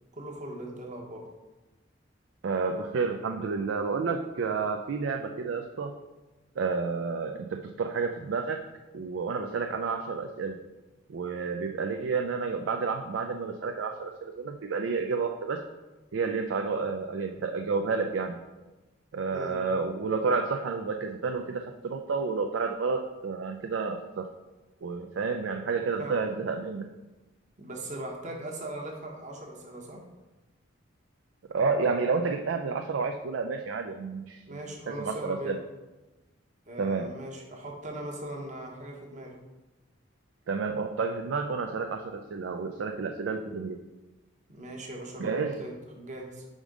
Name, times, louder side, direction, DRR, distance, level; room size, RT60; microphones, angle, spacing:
voice 1, 0.1-1.3 19.3-19.6 26.0-26.2 27.6-30.1 34.5-35.5 36.7-39.3 44.5-45.3 45.6-46.5, right 1 dB, 40° right, 0 dB, 1.0 m, -39 dB
voice 2, 2.4-5.9 6.6-8.6 8.9-10.6 11.1-15.6 16.1-18.4 19.1-24.2 24.8-26.9 31.5-34.6 35.0-35.6 36.8-37.1 40.5-43.8 45.2-45.7, right 4 dB, 75° right, 4 dB, 0.4 m, -30 dB
5.1 x 3.7 x 5.1 m, 1.1 s
head